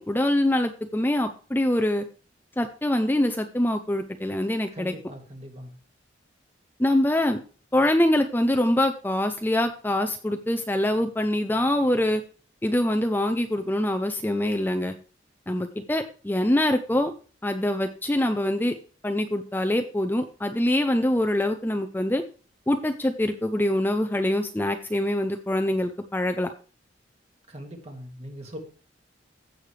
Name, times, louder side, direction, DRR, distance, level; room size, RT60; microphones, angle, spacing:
voice 1, 0.1-2.0 2.6-4.9 6.8-7.4 7.7-12.2 12.6-15.0 15.5-17.1 17.4-18.7 19.0-22.2 22.7-26.5, left 1 dB, 10° left, 6 dB, 0.5 m, -24 dB
voice 2, 4.7-5.8 27.5-28.6, equal, 35° right, 2 dB, 2.1 m, -41 dB
15.5 x 6.4 x 3.3 m, 0.38 s
head